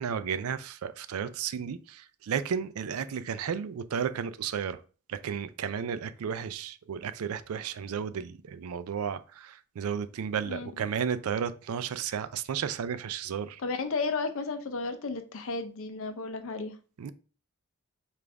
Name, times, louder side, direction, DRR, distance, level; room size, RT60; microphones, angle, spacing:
voice 1, 0.0-4.8 5.1-13.6 17.0-17.1, right 7 dB, 80° right, 0.4 m, -33 dB
voice 2, 10.5-10.8 13.6-16.8, left 4 dB, 65° left, 0.6 m, -33 dB
5.0 x 2.5 x 3.4 m
head